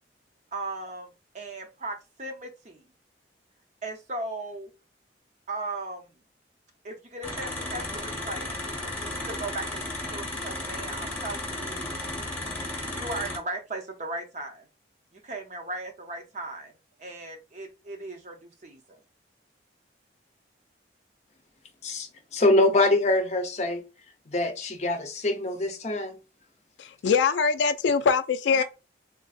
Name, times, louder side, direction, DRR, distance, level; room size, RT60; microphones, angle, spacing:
voice 1, 0.5-1.1 1.3-2.8 3.8-4.7 5.5-6.1 6.8-8.5 8.8-11.9 12.8-14.7 15.1-16.7 17.0-19.0 28.6-28.7, right 2 dB, 40° right, 0.6 m, -37 dB
sound 1, 7.2-13.4, left 1 dB, 10° left, 1.0 m, -34 dB
voice 2, 22.3-23.8 24.3-26.2, left 2 dB, 40° left, 0.6 m, -24 dB
voice 3, 26.8-28.6, left 5 dB, 75° left, 0.3 m, -23 dB
3.6 x 2.5 x 2.3 m
head